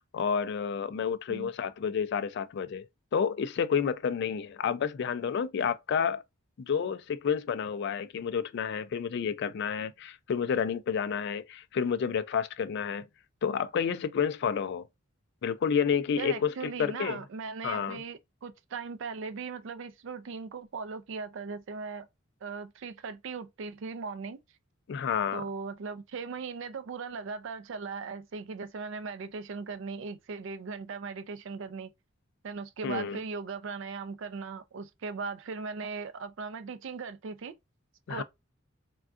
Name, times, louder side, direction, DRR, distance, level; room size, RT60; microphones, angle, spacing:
voice 1, 0.1-6.2 6.6-13.1 13.4-14.9 15.4-17.2 17.6-18.0 24.9-25.4 32.8-33.2 38.1-38.2, left 7 dB, 55° left, 0.3 m, -30 dB
voice 2, 16.2-22.1 22.4-24.4 25.3-31.9 32.4-37.5 38.1-38.2, right 5 dB, 60° right, 0.4 m, -38 dB
3.5 x 2.3 x 2.4 m
head